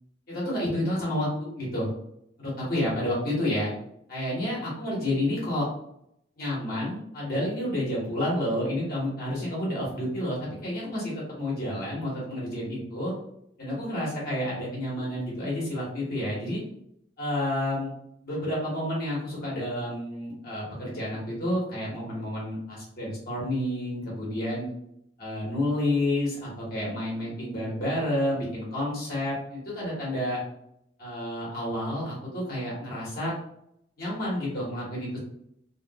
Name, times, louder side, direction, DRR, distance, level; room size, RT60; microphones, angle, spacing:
voice 1, 0.3-1.9 2.4-3.7 4.1-5.7 6.4-13.1 13.6-16.6 17.2-17.9 18.2-24.6 25.2-30.4 31.0-33.3 34.0-35.2, left 1 dB, 50° left, -6 dB, 1.3 m, -30 dB
3.1 x 2.5 x 2.9 m, 0.75 s
head